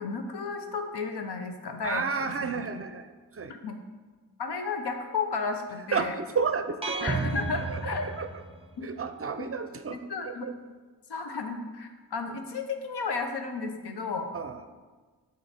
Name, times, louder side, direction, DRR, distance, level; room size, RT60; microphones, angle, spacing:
voice 1, 0.0-2.3 3.5-3.8 4.4-6.1 7.0-8.0 8.8-8.9 9.4-9.5 9.9-10.5 11.1-14.3, left 4 dB, 70° left, 5 dB, 0.9 m, -33 dB
voice 2, 1.8-3.5 5.9-7.0 7.7-8.4 8.8-10.0 10.2-10.6 14.3-14.6, right 5 dB, 35° right, 9 dB, 0.5 m, -32 dB
sound 1, 6.8-8.8, right 3 dB, 15° right, 0.9 m, -32 dB
7.8 x 4.0 x 4.3 m, 1.4 s
cardioid pair, 55°, 41 cm